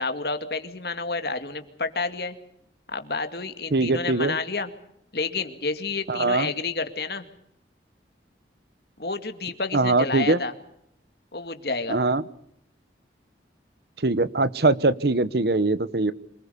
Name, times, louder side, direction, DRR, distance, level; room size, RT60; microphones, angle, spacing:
voice 1, 0.0-2.3 2.9-4.7 5.1-7.3 9.0-10.5 11.3-12.0, left 3 dB, 60° left, 8 dB, 2.2 m, -30 dB
voice 2, 3.7-4.4 6.1-6.5 9.7-10.4 11.9-12.2 14.0-16.1, right 3 dB, 60° right, 16 dB, 1.0 m, -22 dB
26.5 x 20.5 x 6.9 m, 0.74 s
head